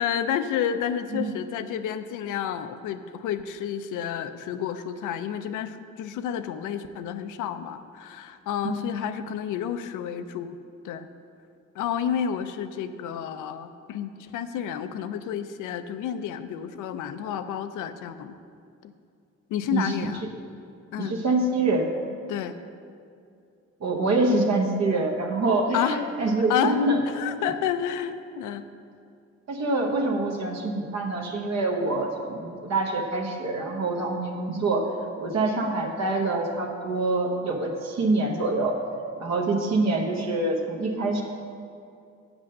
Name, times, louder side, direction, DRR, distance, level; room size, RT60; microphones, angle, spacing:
voice 1, 0.0-10.6 10.8-11.1 11.8-18.4 18.8-18.9 19.5-20.2 20.9-21.2 22.3-22.6 25.7-26.0 26.5-26.8 27.1-28.7, left 9 dB, 85° left, 10 dB, 0.6 m, -30 dB
voice 2, 21.0-21.9 23.8-27.0 29.5-34.9 35.2-38.8 39.2-41.2, right 2 dB, 60° right, 1 dB, 1.0 m, -25 dB
7.5 x 6.0 x 6.6 m, 2.4 s
cardioid pair, 90°, 30 cm